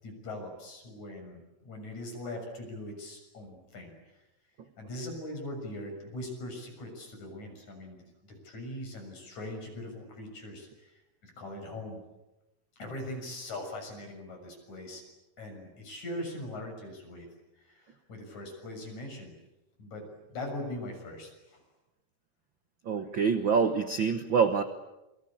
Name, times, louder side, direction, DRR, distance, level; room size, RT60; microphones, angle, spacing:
voice 1, 0.0-3.9 4.8-12.0 12.8-15.0 15.4-17.3 17.6-19.3 19.8-20.0 20.3-21.6, left 1 dB, 50° left, 3 dB, 8.1 m, -41 dB
voice 2, 22.8-24.6, right 6 dB, 70° right, 9 dB, 1.1 m, -26 dB
28.5 x 23.0 x 8.8 m, 0.96 s
omnidirectional pair, 4.2 m